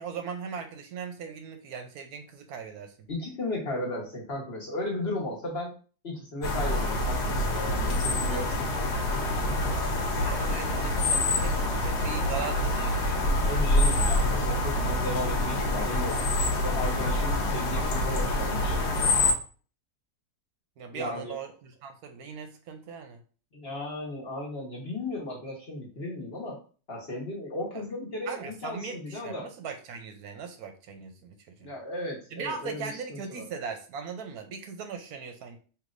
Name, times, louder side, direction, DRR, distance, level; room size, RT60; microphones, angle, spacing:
voice 1, 0.0-3.1 10.2-13.2 20.8-23.2 27.7-27.8 28.3-31.7 32.3-35.6, right 6 dB, 75° right, 6 dB, 1.0 m, -39 dB
voice 2, 3.1-5.7 6.0-8.8 13.5-16.2 16.6-18.8 20.9-21.3 23.5-26.6 26.9-29.5 31.6-33.5, left 1 dB, 40° left, -3 dB, 1.3 m, -35 dB
sound 1, 6.4-19.3, left 1 dB, 85° left, 1.3 m, -26 dB
4.7 x 3.2 x 2.5 m, 0.38 s
omnidirectional pair, 1.7 m